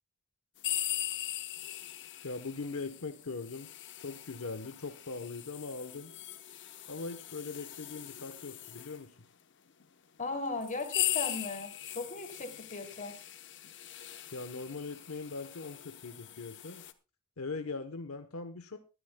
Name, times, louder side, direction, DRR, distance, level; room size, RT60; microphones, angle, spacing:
sound 1, 0.6-9.0 9.8-9.9 10.6-16.9, left 13 dB, 60° left, 0.9 m, -40 dB
voice 1, 2.2-3.7 4.0-6.1 6.9-9.1 14.3-16.8 17.4-18.8, left 3 dB, 80° left, 8 dB, 1.0 m, -40 dB
voice 2, 10.2-13.2, left 3 dB, 40° left, 5 dB, 2.8 m, -37 dB
20.5 x 12.5 x 2.2 m, 0.29 s
head